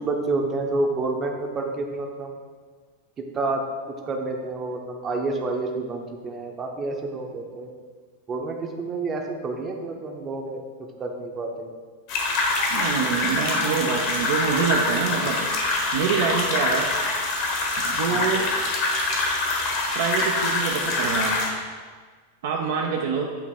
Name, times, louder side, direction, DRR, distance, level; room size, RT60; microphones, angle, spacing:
voice 1, 0.0-2.3 3.3-3.6 4.1-7.7 8.3-10.6 11.0-11.7 18.1-18.3, right 3 dB, 25° right, 2 dB, 0.8 m, -29 dB
sound 1, 12.1-21.5, left 2 dB, 45° left, 1.3 m, -25 dB
voice 2, 12.7-15.5 15.9-16.9 17.8-18.5 19.9-21.5 22.4-23.4, right 6 dB, 55° right, 1 dB, 0.5 m, -26 dB
8.5 x 2.9 x 4.6 m, 1.5 s
figure-of-eight pair, 90°, 0 cm